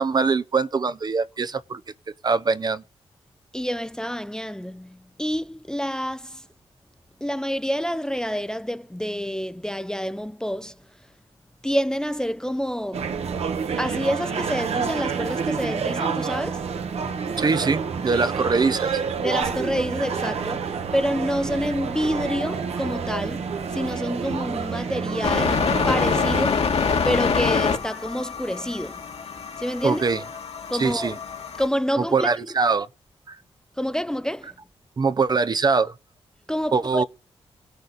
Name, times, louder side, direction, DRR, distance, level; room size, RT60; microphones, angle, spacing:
voice 1, 0.0-1.8 2.2-2.8 17.4-18.9 29.8-30.2 30.7-31.2 32.0-32.9 33.3-33.4 35.0-35.9 36.7-37.0, right 4 dB, 40° right, 0.6 m, -22 dB
voice 2, 3.5-6.4 7.2-10.7 11.6-13.1 13.8-16.7 19.2-23.5 23.7-26.7 27.0-29.0 29.6-30.0 30.7-31.2 31.6-32.3 33.8-34.5 36.5-37.0, equal, 5° left, 0.5 m, -28 dB
sound 1, 12.9-26.4, right 6 dB, 75° right, 1.1 m, -28 dB
sound 2, 25.2-31.7, left 5 dB, 70° left, 1.8 m, -25 dB
17.5 x 6.5 x 4.0 m
cardioid pair, 75°, 11 cm